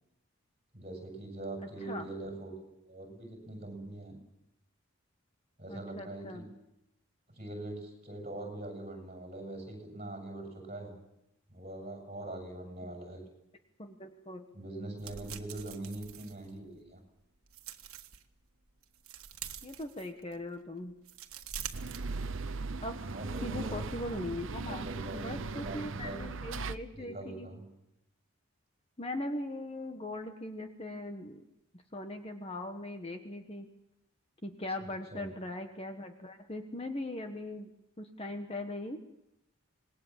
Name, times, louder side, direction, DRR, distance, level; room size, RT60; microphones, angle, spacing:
voice 1, 0.7-4.2 5.6-6.5 7.3-11.0 11.5-13.3 14.5-17.0 23.1-23.9 24.7-26.2 26.9-27.7 35.1-35.3, right 2 dB, 30° right, 2 dB, 7.1 m, -42 dB
voice 2, 5.7-6.5 12.8-12.9 13.8-14.4 19.6-20.9 22.8-23.0 23.4-24.8 25.1-27.5 29.0-31.4 31.9-33.7 34.4-37.7 38.0-39.0, left 1 dB, 25° left, 6 dB, 1.3 m, -40 dB
sound 1, 15.0-16.9 17.3-18.2 18.7-20.4 20.9-22.7 23.0-23.1, right 9 dB, 85° right, 1.6 m, -45 dB
sound 2, 21.7-26.8, right 3 dB, 65° right, 0.8 m, -38 dB
26.5 x 20.5 x 7.4 m, 0.85 s
head